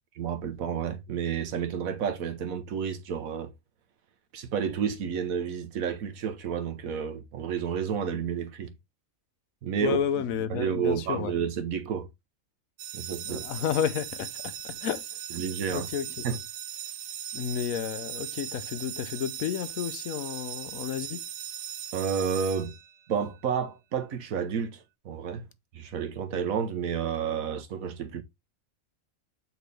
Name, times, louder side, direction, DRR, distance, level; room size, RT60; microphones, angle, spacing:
voice 1, 0.1-3.5 4.3-8.7 9.6-10.0 10.5-12.1 12.9-13.4 15.3-15.9 16.2-16.4 21.9-22.7 23.1-25.5 25.7-28.2, right 7 dB, 85° right, 1.4 m, -30 dB
voice 2, 9.8-11.3 13.2-15.0 15.7-16.2 17.3-21.2, left 8 dB, 80° left, 1.2 m, -31 dB
sound 1, 12.8-23.2, right 10 dB, 65° right, 0.8 m, -39 dB
8.0 x 4.7 x 3.3 m
omnidirectional pair, 1.4 m